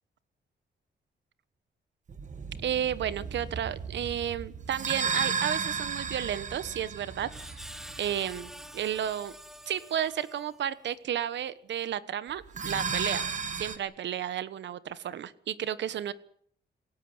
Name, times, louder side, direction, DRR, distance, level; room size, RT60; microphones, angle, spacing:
sound 1, 2.1-8.7 12.4-13.8, right 5 dB, 45° right, 1.9 m, -34 dB
voice 1, 2.6-7.3 8.0-9.4 9.7-13.3 13.6-16.1, right 10 dB, 85° right, 16 dB, 1.3 m, -32 dB
Screech, 6.5-10.8, equal, ahead, 1.2 m, -48 dB
27.5 x 17.0 x 8.1 m, 0.63 s
wide cardioid pair, 165°, 18 cm